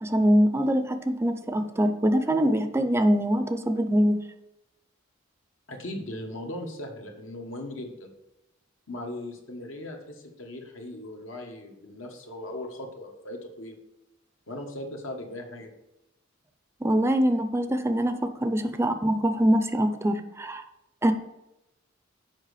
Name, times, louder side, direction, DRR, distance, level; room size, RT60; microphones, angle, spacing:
voice 1, 0.0-4.2 16.8-20.6 21.0-21.1, equal, 15° right, 9 dB, 0.5 m, -23 dB
voice 2, 5.7-8.1 8.9-13.7 14.5-15.7, left 1 dB, 80° left, 2 dB, 1.4 m, -38 dB
7.4 x 5.3 x 4.9 m, 0.92 s
head